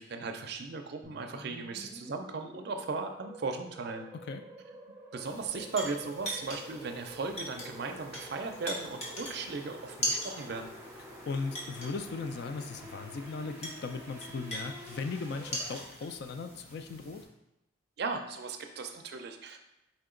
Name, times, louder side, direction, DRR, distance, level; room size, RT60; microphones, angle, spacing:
voice 1, 0.0-4.1 5.1-10.7 18.0-19.6, right 4 dB, 55° right, 6 dB, 0.4 m, -37 dB
sound 1, 1.0-15.8, right 1 dB, 10° right, 0.7 m, -49 dB
sound 2, 5.2-17.2, equal, 30° left, 1.0 m, -41 dB
voice 2, 11.3-17.3, left 4 dB, 55° left, 8 dB, 0.3 m, -38 dB
4.3 x 2.8 x 3.7 m, 0.90 s
head